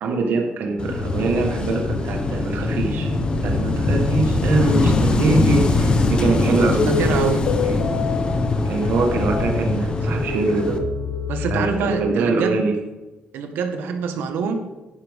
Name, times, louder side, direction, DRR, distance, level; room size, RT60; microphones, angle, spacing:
voice 1, 0.0-3.1 3.4-6.9 7.6-7.8 8.6-10.8 11.4-12.7, right 3 dB, 65° right, 2 dB, 1.4 m, -23 dB
Wind / Waves surf, 0.8-10.8, left 2 dB, 25° left, 0.9 m, -22 dB
voice 2, 6.1-7.4 11.3-12.6 13.3-14.6, right 5 dB, 90° right, 5 dB, 1.4 m, -26 dB
sound 1, 6.8-12.1, left 3 dB, 75° left, 1.3 m, -26 dB
10.5 x 10.0 x 3.6 m, 1.1 s
cardioid pair, 160°, 4 cm